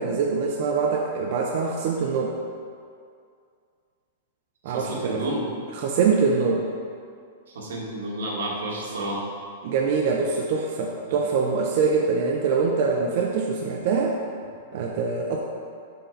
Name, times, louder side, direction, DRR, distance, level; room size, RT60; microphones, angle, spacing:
voice 1, 0.0-2.3 4.6-5.2 5.7-6.6 9.6-14.2 14.7-15.4, right 5 dB, 50° right, 0 dB, 0.6 m, -24 dB
voice 2, 4.7-5.5 7.5-9.3 11.1-11.2, right 1 dB, 90° right, -3 dB, 1.7 m, -30 dB
6.6 x 5.4 x 4.0 m, 2.3 s
supercardioid pair, 160°, 0 cm